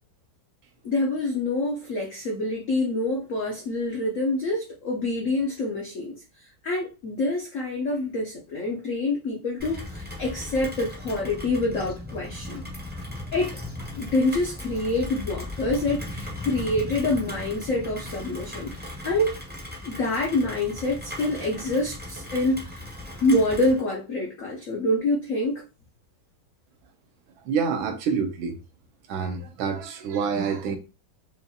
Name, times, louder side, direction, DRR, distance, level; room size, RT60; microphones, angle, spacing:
voice 1, 0.8-12.6 13.3-13.6 13.9-19.4 19.8-22.8 23.2-25.6, left 2 dB, 70° left, 0.7 m, -26 dB
Rain, 9.6-23.8, left 1 dB, 15° right, 0.3 m, -37 dB
voice 2, 27.4-28.6 29.1-30.8, right 6 dB, 75° right, 1.4 m, -27 dB
5.3 x 2.3 x 2.7 m
omnidirectional pair, 2.3 m